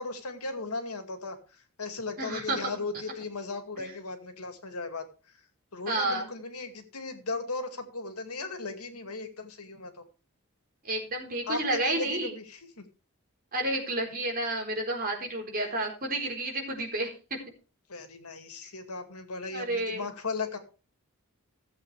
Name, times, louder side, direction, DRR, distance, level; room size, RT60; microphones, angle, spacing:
voice 1, 0.0-5.4 5.7-10.0 11.5-12.9 17.9-20.6, left 3 dB, 90° left, 7 dB, 2.2 m, -37 dB
voice 2, 2.2-2.6 5.9-6.3 10.8-12.3 13.5-17.1 19.5-20.0, right 2 dB, 40° right, 0 dB, 4.2 m, -30 dB
16.5 x 7.8 x 3.4 m, 0.34 s
head